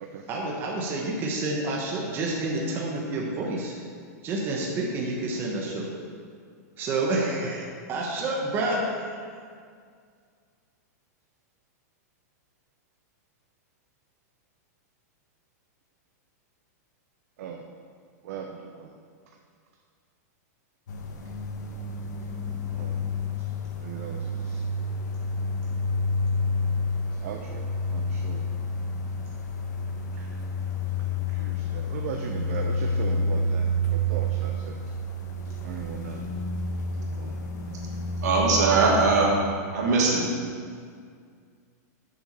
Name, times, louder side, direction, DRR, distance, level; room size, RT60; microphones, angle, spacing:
voice 1, 0.3-3.8 4.2-5.9 6.8-9.1, right 2 dB, 25° right, -2 dB, 1.2 m, -29 dB
voice 2, 18.2-18.9 22.7-23.0 23.8-24.6 27.1-28.4 30.2-30.3 31.3-34.8 35.6-36.2 37.1-37.3, right 7 dB, 55° right, 2 dB, 0.8 m, -38 dB
sound 1, 20.9-39.3, left 1 dB, 85° left, 1.4 m, -29 dB
voice 3, 38.2-39.3 39.7-40.2, right 3 dB, 75° right, -2 dB, 2.7 m, -20 dB
8.1 x 7.2 x 6.7 m, 2.1 s
supercardioid pair, 165°, 9 cm